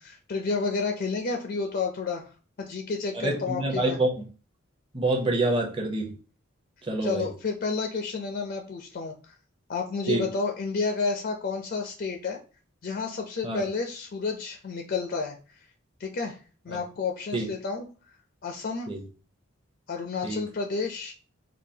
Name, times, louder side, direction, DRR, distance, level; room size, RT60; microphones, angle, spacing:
voice 1, 0.0-4.0 7.0-9.3 9.7-12.4 12.8-15.6 16.0-16.4 16.6-17.9 18.4-18.9 19.9-21.1, left 4 dB, 50° left, 0.4 m, -31 dB
voice 2, 3.1-4.1 4.9-6.1 6.9-7.3 10.1-10.2 13.4-13.6 17.3-17.4 18.9-19.0 20.2-20.4, right 2 dB, 25° right, 0.6 m, -26 dB
3.7 x 2.3 x 2.7 m
head